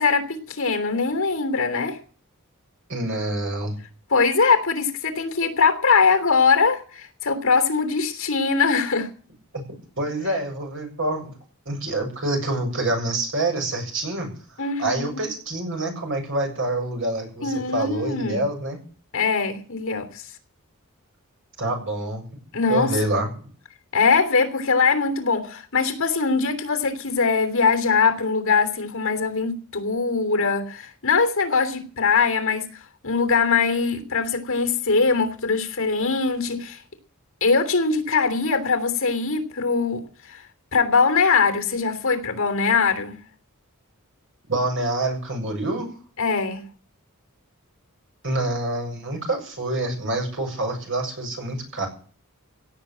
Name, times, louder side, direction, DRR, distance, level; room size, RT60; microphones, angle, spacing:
voice 1, 0.0-2.0 4.1-9.1 14.6-15.2 17.4-18.4 19.1-20.3 22.5-22.9 23.9-32.6 33.0-36.8 37.4-40.4 40.7-43.2 46.2-46.6, left 4 dB, 65° left, 8 dB, 3.1 m, -22 dB
voice 2, 2.9-3.8 10.0-11.3 11.7-14.3 14.8-18.8 21.6-22.2 22.7-23.3 44.5-45.9 48.2-51.9, right 2 dB, 60° right, 3 dB, 7.3 m, -26 dB
17.5 x 7.4 x 9.1 m, 0.43 s
head